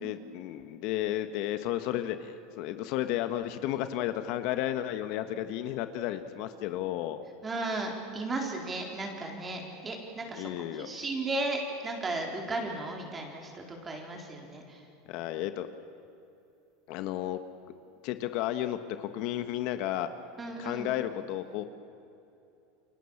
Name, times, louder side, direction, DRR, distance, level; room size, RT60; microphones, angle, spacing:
voice 1, 0.0-7.2 10.3-10.9 15.1-15.7 16.9-17.4 18.0-20.1 20.6-21.6, left 13 dB, 55° left, 9 dB, 1.3 m, -33 dB
voice 2, 7.4-14.9 20.4-20.9, right 2 dB, 20° right, 1 dB, 4.2 m, -35 dB
29.5 x 24.0 x 7.3 m, 2.7 s
supercardioid pair, 145°, 0 cm